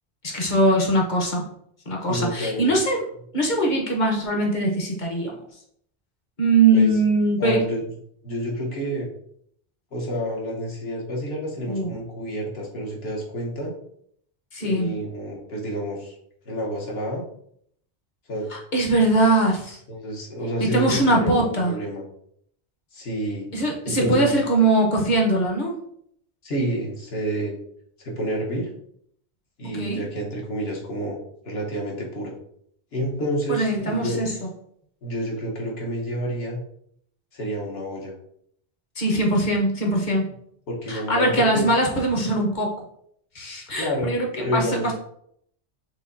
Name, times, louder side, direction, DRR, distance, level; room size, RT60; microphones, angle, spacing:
voice 1, 0.2-1.5 1.9-3.0 3.3-5.4 6.4-7.6 11.7-11.9 14.5-14.9 18.5-19.8 20.6-21.7 23.5-25.8 29.6-30.0 33.5-34.5 39.0-40.3 40.9-42.7 43.3-44.9, right 2 dB, 45° left, 0 dB, 1.0 m, -21 dB
voice 2, 2.1-2.7 6.7-6.9 7.4-7.8 8.2-9.1 9.9-13.7 14.6-16.1 16.4-17.2 18.3-18.5 19.9-22.0 22.9-23.5 23.9-24.3 26.4-27.6 28.0-28.7 29.6-32.3 32.9-34.2 35.0-36.6 37.3-38.1 40.7-41.7 43.8-44.1 44.4-44.8, equal, 70° left, -2 dB, 1.3 m, -29 dB
6.3 x 2.7 x 2.6 m, 0.69 s
omnidirectional pair, 1.1 m